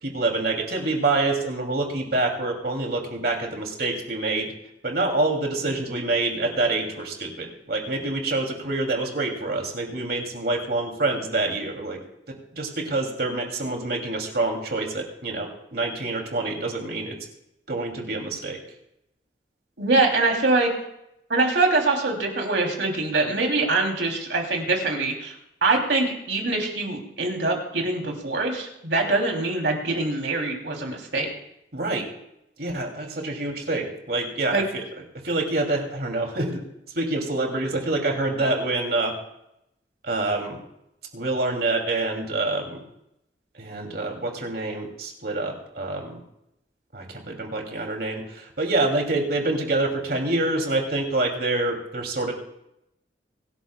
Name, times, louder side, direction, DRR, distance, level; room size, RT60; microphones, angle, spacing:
voice 1, 0.0-4.5 4.8-12.0 12.3-17.2 17.7-18.6 31.7-32.0 32.6-34.8 35.2-36.6 36.9-39.1 40.0-40.6 41.1-42.8 43.5-46.2 46.9-52.3, right 2 dB, 55° right, 2 dB, 2.7 m, -26 dB
voice 2, 19.8-20.7 21.3-25.3 25.6-31.3 34.5-34.6, right 3 dB, 80° right, 1 dB, 3.0 m, -23 dB
24.5 x 11.5 x 2.3 m, 0.82 s
head